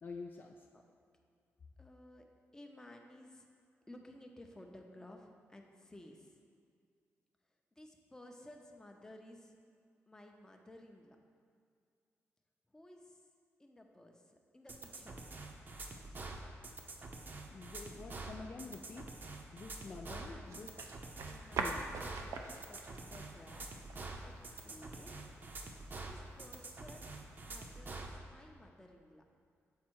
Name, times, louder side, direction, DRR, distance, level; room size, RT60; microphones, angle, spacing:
voice 1, 0.0-0.6 17.5-19.1 19.5-20.7 21.6-21.8, left 4 dB, 40° left, 2 dB, 0.4 m, -48 dB
voice 2, 1.8-2.3 2.5-3.5 3.9-6.4 7.8-9.5 10.1-11.2 12.7-13.2 13.6-15.2 19.9-20.6 21.3-23.7 24.2-25.3 26.0-29.2, left 1 dB, 10° left, 2 dB, 0.7 m, -56 dB
sound 1, 14.7-28.1, right 3 dB, 40° right, 0.7 m, -46 dB
sound 2, 20.5-27.8, right 4 dB, 90° right, 0.5 m, -46 dB
7.5 x 4.2 x 4.6 m, 2.3 s
cardioid pair, 110°, 5 cm